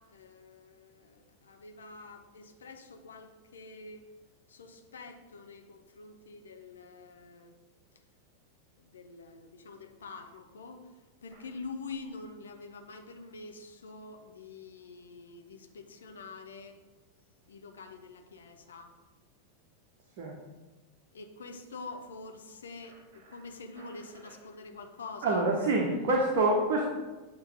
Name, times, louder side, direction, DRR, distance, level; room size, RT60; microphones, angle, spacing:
voice 1, 0.0-4.1 4.5-7.5 8.8-10.9 11.2-16.8 17.5-18.9 21.1-25.4, left 3 dB, 65° left, 5 dB, 0.7 m, -46 dB
voice 2, 25.2-26.8, right 2 dB, 50° right, -1 dB, 1.0 m, -26 dB
8.4 x 3.1 x 5.2 m, 1.2 s
figure-of-eight pair, 90°, 0 cm